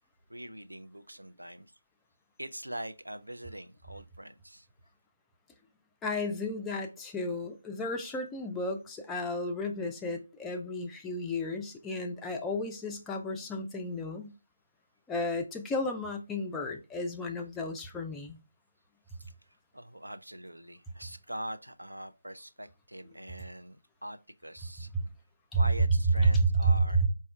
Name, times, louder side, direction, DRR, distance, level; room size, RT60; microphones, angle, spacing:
voice 1, 0.3-1.7 2.4-4.7 19.1-19.3 19.7-24.9 25.5-27.1, right 1 dB, 85° right, 0.5 m, -43 dB
voice 2, 6.0-14.3 15.1-18.4 24.9-25.0 25.5-25.6 26.2-27.1, right 1 dB, 5° left, 0.3 m, -31 dB
4.2 x 2.3 x 3.2 m
figure-of-eight pair, 160°, 0 cm